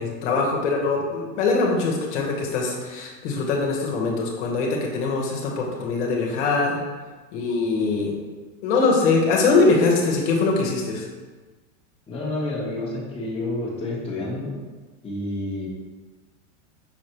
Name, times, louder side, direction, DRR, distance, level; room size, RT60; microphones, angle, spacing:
voice 1, 0.0-6.8 7.3-8.1 8.6-11.0, left 3 dB, 75° left, -1 dB, 1.1 m, -22 dB
voice 2, 12.1-14.5 15.0-15.7, left 2 dB, 15° left, -6 dB, 1.0 m, -29 dB
5.7 x 3.2 x 2.9 m, 1.3 s
supercardioid pair, 145°, 36 cm